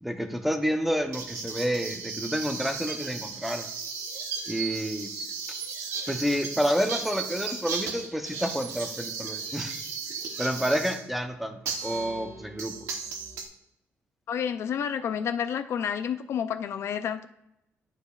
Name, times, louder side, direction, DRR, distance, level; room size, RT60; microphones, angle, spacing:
voice 1, 0.0-3.7 4.5-5.1 6.1-9.7 10.4-12.7, equal, 5° right, 6 dB, 0.7 m, -29 dB
sound 1, 1.1-11.0 11.7-13.4, right 5 dB, 85° right, 1.0 m, -35 dB
voice 2, 14.3-17.3, left 8 dB, 65° left, 10 dB, 0.4 m, -30 dB
11.5 x 5.0 x 2.4 m, 0.85 s
cardioid pair, 125°, 5 cm